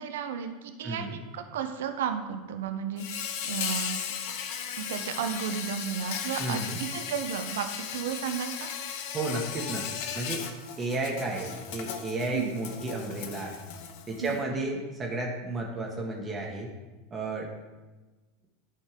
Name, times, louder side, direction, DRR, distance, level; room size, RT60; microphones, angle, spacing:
voice 1, 0.0-4.0 4.8-8.7 12.3-12.6 14.2-14.4, right 8 dB, 70° right, 7 dB, 0.7 m, -33 dB
voice 2, 0.8-1.2 6.4-6.8 9.1-9.8 10.1-10.4 10.8-13.5 14.1-16.7 17.1-17.5, right 2 dB, 25° right, -1 dB, 1.8 m, -32 dB
Insect, 3.0-14.4, left 8 dB, 60° left, 0.8 m, -36 dB
11.0 x 4.2 x 5.2 m, 1.2 s
hypercardioid pair, 85°, 0 cm